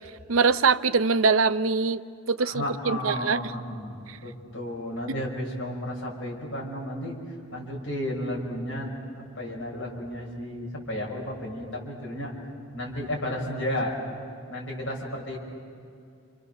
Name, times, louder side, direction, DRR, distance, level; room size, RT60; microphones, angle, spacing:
voice 1, 0.3-2.0 2.3-3.4, right 5 dB, 85° right, 13 dB, 0.7 m, -23 dB
voice 2, 2.4-7.1 7.5-8.9 9.4-12.3 12.7-13.9 14.5-15.4, left 1 dB, 65° left, -2 dB, 5.8 m, -33 dB
29.5 x 27.0 x 6.9 m, 2.5 s
head